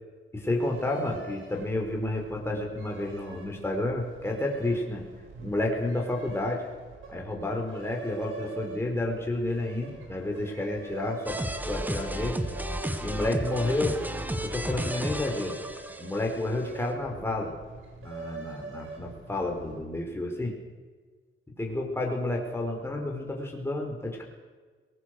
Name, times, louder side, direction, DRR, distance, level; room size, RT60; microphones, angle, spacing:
voice 1, 0.3-5.0 5.4-6.6 7.1-11.4 11.7-12.4 13.0-14.0 14.3-15.5 16.0-17.5 18.0-20.5 21.6-24.2, left 2 dB, 10° left, 0 dB, 4.9 m, -30 dB
sound 1, 0.6-20.0, right 5 dB, 70° right, 6.6 m, -45 dB
sound 2, 11.3-16.4, equal, 10° right, 1.7 m, -33 dB
22.5 x 20.0 x 6.8 m, 1.4 s
cardioid pair, 105°, 21 cm